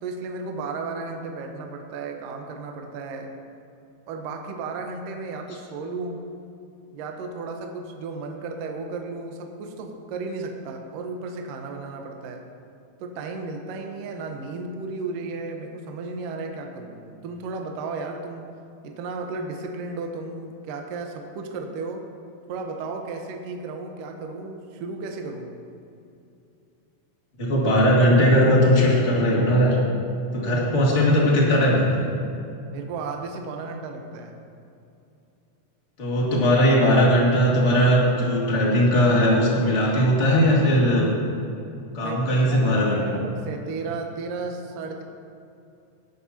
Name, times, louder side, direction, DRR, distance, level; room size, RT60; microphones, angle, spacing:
voice 1, 0.0-3.3 4.1-6.2 6.9-12.5 13.0-18.5 18.8-22.0 22.5-25.5 32.7-34.4 42.0-45.0, right 3 dB, 70° right, 3 dB, 2.1 m, -34 dB
voice 2, 27.4-29.8 30.3-32.1 36.0-41.1 41.9-43.0, equal, 50° left, -4 dB, 0.8 m, -19 dB
18.5 x 11.0 x 2.9 m, 2.6 s
omnidirectional pair, 5.2 m